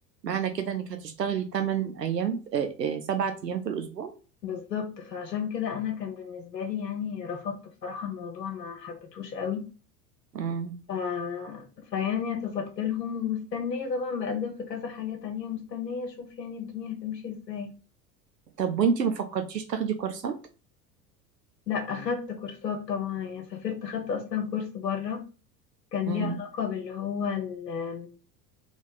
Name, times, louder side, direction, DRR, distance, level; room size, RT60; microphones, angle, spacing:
voice 1, 0.2-4.1 10.3-10.8 18.6-20.4 26.1-26.4, right 7 dB, 90° right, 7 dB, 0.6 m, -29 dB
voice 2, 4.4-9.6 10.9-11.6 11.9-17.7 21.7-25.2 25.9-28.1, left 7 dB, 80° left, 3 dB, 1.0 m, -32 dB
3.4 x 3.2 x 3.9 m, 0.34 s
figure-of-eight pair, 75°, 49 cm